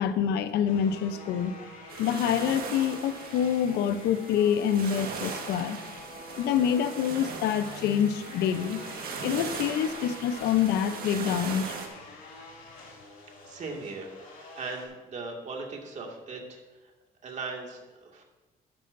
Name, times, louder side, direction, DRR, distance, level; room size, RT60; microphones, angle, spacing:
voice 1, 0.0-1.6 2.0-5.8 6.4-8.8 9.2-11.8, left 8 dB, 80° left, 11 dB, 0.7 m, -26 dB
sound 1, 0.7-14.9, left 2 dB, 55° left, 2.5 m, -47 dB
sound 2, 1.9-11.9, right 5 dB, 65° right, 1.6 m, -39 dB
voice 2, 13.4-16.9 17.2-18.2, right 3 dB, 45° right, 0 dB, 2.1 m, -39 dB
12.0 x 10.5 x 2.6 m, 1.2 s
cardioid pair, 110°, 17 cm